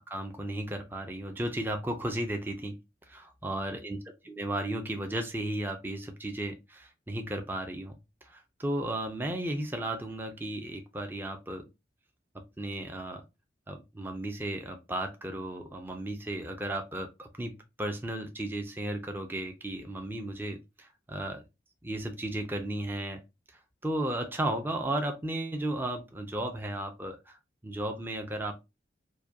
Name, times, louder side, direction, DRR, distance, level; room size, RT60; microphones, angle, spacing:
voice 1, 0.1-2.8 3.1-4.0 4.2-7.9 8.2-11.7 12.3-13.2 13.7-21.4 21.8-23.2 23.8-27.4 27.6-28.6, right 1 dB, 10° right, 0.5 m, -34 dB
4.7 x 2.2 x 2.7 m
head